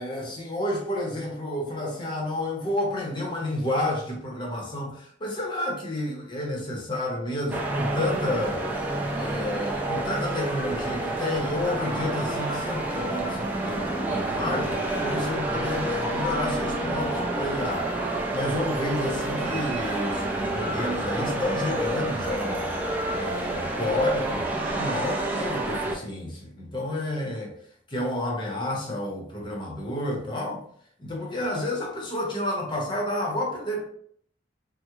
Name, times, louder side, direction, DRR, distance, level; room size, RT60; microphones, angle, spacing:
voice 1, 0.0-24.5 24.8-27.5 27.9-30.6 31.0-33.9, left 1 dB, 25° left, -1 dB, 0.7 m, -30 dB
sound 1, 7.5-26.0, right 1 dB, 10° right, 0.4 m, -28 dB
3.4 x 2.0 x 3.0 m, 0.63 s
head